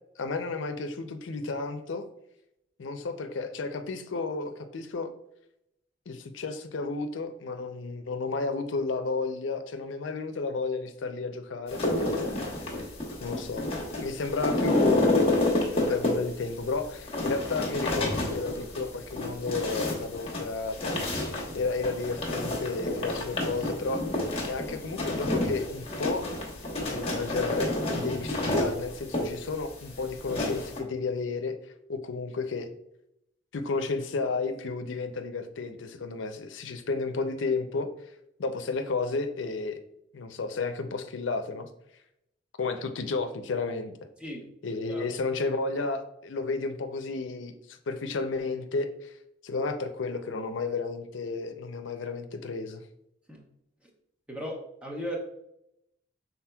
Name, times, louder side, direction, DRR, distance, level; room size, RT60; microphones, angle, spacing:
voice 1, 0.2-2.0 2.8-5.1 6.1-12.5 13.2-13.6 14.0-15.4 15.7-21.2 21.5-24.0 24.5-26.3 26.9-31.6 31.9-32.7 33.5-37.9 38.4-39.8 40.1-41.7 42.6-43.9 44.6-49.1 49.4-52.8, left 3 dB, 85° left, 8 dB, 0.5 m, -32 dB
sound 1, 11.7-30.8, left 1 dB, 30° left, 1.0 m, -29 dB
voice 2, 54.3-55.2, equal, 5° right, 0 dB, 0.8 m, -36 dB
5.8 x 3.9 x 2.2 m, 0.79 s
head